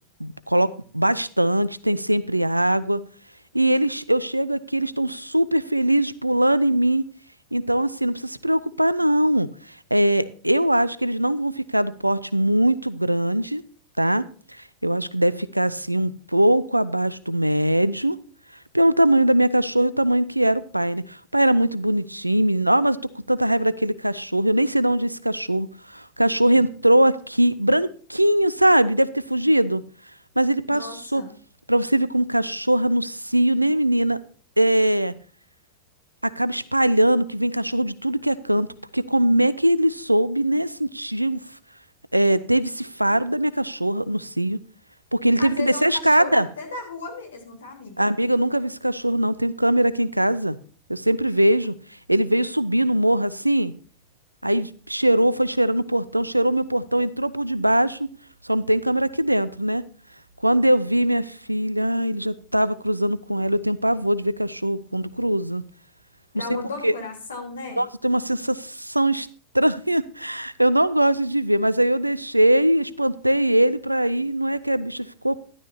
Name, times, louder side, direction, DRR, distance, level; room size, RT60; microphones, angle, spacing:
voice 1, 0.2-3.0 3.5-7.0 7.5-13.6 14.0-14.2 14.8-18.2 18.7-23.0 23.3-29.8 30.4-31.2 31.7-34.2 34.6-35.1 36.2-38.7 38.9-41.4 42.1-44.6 45.1-46.5 48.0-50.6 50.9-51.7 52.1-53.7 54.4-58.1 58.4-59.8 60.4-65.6 66.4-66.5 66.8-66.9 67.8-69.3 69.5-75.5, right 1 dB, 85° right, 18 dB, 0.6 m, -21 dB
voice 2, 30.7-31.3 45.4-48.1 66.3-67.8, left 3 dB, 70° left, 2 dB, 3.9 m, -35 dB
13.0 x 11.5 x 2.8 m, 0.42 s
figure-of-eight pair, 90°, 0 cm